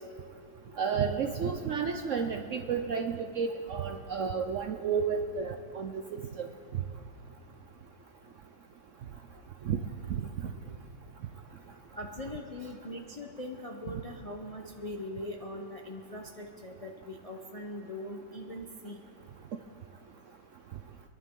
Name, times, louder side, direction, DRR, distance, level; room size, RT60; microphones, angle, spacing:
voice 1, 0.8-6.5 9.7-9.8 10.1-10.2 13.9-14.0, right 6 dB, 65° right, 5 dB, 0.8 m, -31 dB
voice 2, 12.0-19.0, left 1 dB, 35° left, 1 dB, 0.6 m, -41 dB
26.0 x 11.0 x 3.7 m, 2.4 s
omnidirectional pair, 1.9 m